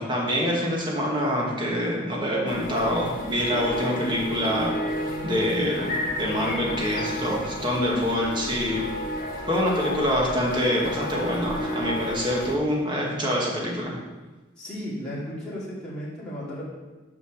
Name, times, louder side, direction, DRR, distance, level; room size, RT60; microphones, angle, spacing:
voice 1, 0.0-4.7 5.2-8.8 9.5-14.0, equal, 25° right, -3 dB, 1.7 m, -25 dB
sound 1, 2.5-12.6, left 1 dB, 45° left, 1.5 m, -32 dB
voice 2, 14.6-16.6, equal, 5° left, -10 dB, 2.8 m, -34 dB
6.0 x 6.0 x 6.5 m, 1.2 s
head